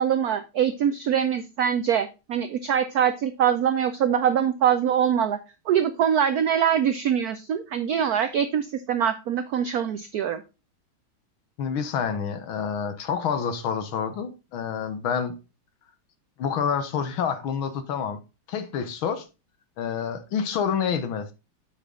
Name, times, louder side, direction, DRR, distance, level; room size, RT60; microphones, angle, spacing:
voice 1, 0.0-5.4 5.7-10.4, right 9 dB, 85° right, 0.8 m, -23 dB
voice 2, 11.6-15.4 16.4-18.2 18.5-19.3 19.8-21.3, left 7 dB, 75° left, 1.8 m, -28 dB
8.2 x 5.9 x 3.7 m
omnidirectional pair, 2.3 m